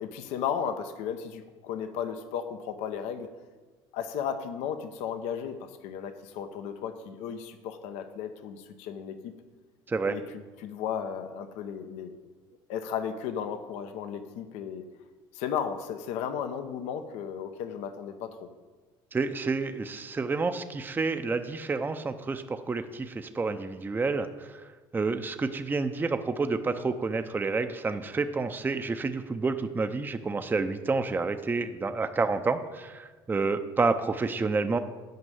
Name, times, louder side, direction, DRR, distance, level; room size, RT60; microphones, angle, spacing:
voice 1, 0.0-3.3 3.9-9.3 10.1-12.2 12.7-14.8 15.3-18.5, left 8 dB, 80° left, 9 dB, 0.8 m, -35 dB
voice 2, 19.1-24.6 24.9-34.8, right 4 dB, 15° right, 8 dB, 0.6 m, -29 dB
9.4 x 5.4 x 7.7 m, 1.3 s
supercardioid pair, 100°, 11 cm